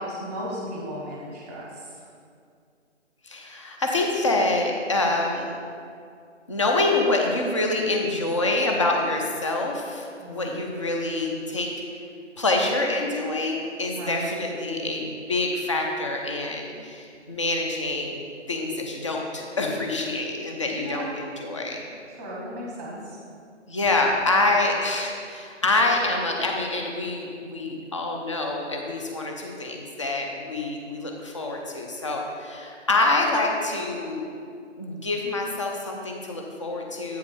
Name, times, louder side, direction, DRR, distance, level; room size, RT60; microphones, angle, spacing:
voice 1, 0.0-2.0 10.2-10.6 13.9-14.3 20.8-21.1 22.1-23.2 24.2-24.5, equal, 15° right, -4 dB, 0.9 m, -36 dB
voice 2, 3.2-5.5 6.5-11.7 12.4-18.2 18.5-21.8 23.7-34.2 34.8-37.2, left 2 dB, 25° left, 1 dB, 0.6 m, -26 dB
8.1 x 4.8 x 4.9 m, 2.3 s
figure-of-eight pair, 155°, 36 cm